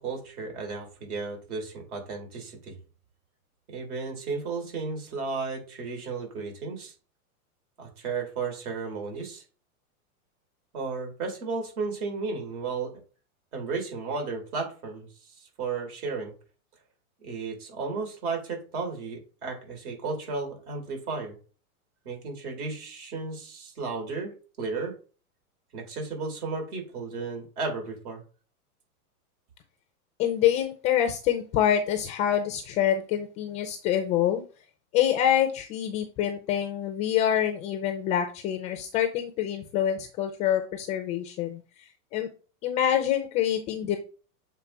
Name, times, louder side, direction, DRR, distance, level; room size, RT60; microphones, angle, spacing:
voice 1, 0.0-2.7 3.7-6.9 7.8-9.4 10.7-12.9 13.5-16.3 17.2-21.3 22.1-25.0 25.7-28.2, right 4 dB, 70° right, 2 dB, 3.7 m, -34 dB
voice 2, 30.2-34.4 34.9-42.3 42.6-44.0, left 10 dB, 15° left, 6 dB, 0.3 m, -26 dB
7.3 x 3.6 x 4.5 m, 0.37 s
hypercardioid pair, 130°, 44 cm